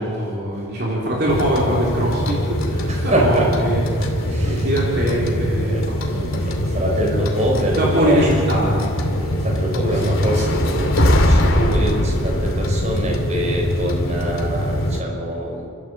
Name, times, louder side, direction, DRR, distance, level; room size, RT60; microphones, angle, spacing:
voice 1, 0.0-3.8 4.2-6.7 7.8-8.9 9.9-10.0, equal, 50° right, -4 dB, 3.8 m, -22 dB
sound 1, 1.3-15.0, equal, 80° left, 2.6 m, -21 dB
voice 2, 2.9-3.7 4.3-4.7 5.7-5.8 6.3-8.3 9.1-15.7, right 1 dB, 35° right, -1 dB, 4.7 m, -24 dB
28.5 x 13.5 x 7.9 m, 2.4 s
head